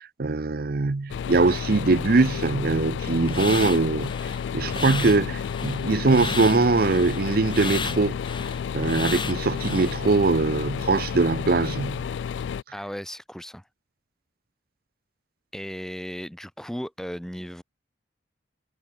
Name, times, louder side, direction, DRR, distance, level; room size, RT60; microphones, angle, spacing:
voice 1, 0.0-4.1 4.5-8.2 8.7-12.0, right 3 dB, 55° right, 0.6 m, -22 dB
sound 1, 1.1-12.6, left 7 dB, 80° left, 0.3 m, -31 dB
sound 2, 3.3-10.0, left 4 dB, 25° left, 2.0 m, -33 dB
voice 2, 12.7-13.6 15.5-17.6, equal, 5° left, 0.8 m, -36 dB
head